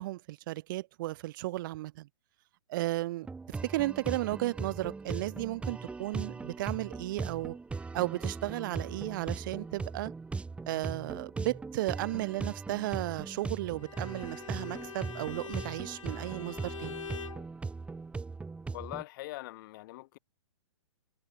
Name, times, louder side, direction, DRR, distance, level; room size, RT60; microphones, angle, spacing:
voice 1, 0.0-2.1 2.7-7.6 7.9-10.1 10.7-17.0, right 17 dB, 40° right, 0.7 m, -34 dB
sound 1, 3.2-19.0, right 4 dB, 5° right, 3.1 m, -39 dB
Bowed string instrument, 13.8-17.5, left 7 dB, 80° left, 2.8 m, -44 dB
voice 2, 18.7-20.2, left 19 dB, 40° left, 1.8 m, -42 dB
hypercardioid pair, 145°, 16 cm